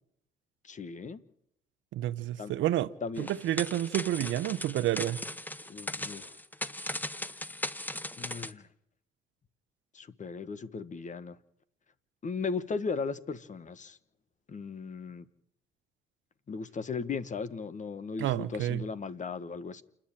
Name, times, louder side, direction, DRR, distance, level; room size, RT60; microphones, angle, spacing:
voice 1, 0.6-1.2 2.4-2.5 3.0-3.3 5.7-6.3 8.2-8.7 9.9-11.4 12.2-14.0 14.5-15.2 16.5-19.8, left 5 dB, 40° left, 1.3 m, -37 dB
voice 2, 1.9-2.9 3.2-5.2 18.2-18.8, right 13 dB, 75° right, 0.8 m, -29 dB
sound 1, 3.2-8.5, left 1 dB, 10° left, 1.0 m, -38 dB
28.5 x 10.0 x 8.9 m
cardioid pair, 85°, 20 cm